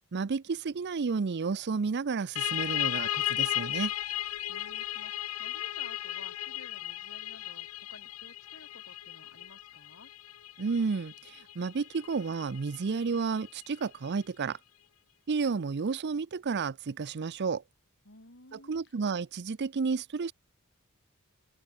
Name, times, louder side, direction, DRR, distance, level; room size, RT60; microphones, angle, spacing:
voice 1, 0.1-3.9 10.6-14.6 15.3-17.6 18.5-20.3, right 5 dB, 50° right, 0.5 m, -31 dB
sound 1, 2.4-13.7, left 14 dB, 70° left, 0.6 m, -35 dB
voice 2, 4.4-10.1 18.0-18.9, left 2 dB, 55° left, 6.4 m, -54 dB
open air
head